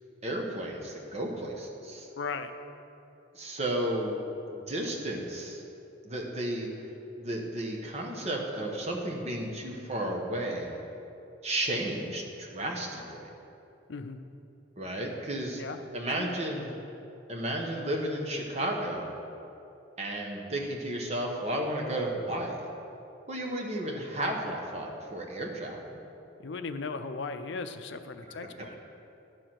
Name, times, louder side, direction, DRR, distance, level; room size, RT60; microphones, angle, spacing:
voice 1, 0.2-2.1 3.3-4.2 4.5-5.6 6.0-6.9 7.2-10.8 11.4-13.3 14.8-15.6 15.9-16.7 17.3-19.1 20.0-22.7 23.3-26.0 28.3-28.8, right 1 dB, 35° right, 0 dB, 1.1 m, -33 dB
voice 2, 2.2-2.5 13.9-14.2 15.6-15.8 16.1-16.3 26.4-28.7, left 4 dB, 65° left, 9 dB, 0.5 m, -37 dB
12.5 x 4.9 x 5.8 m, 2.8 s
head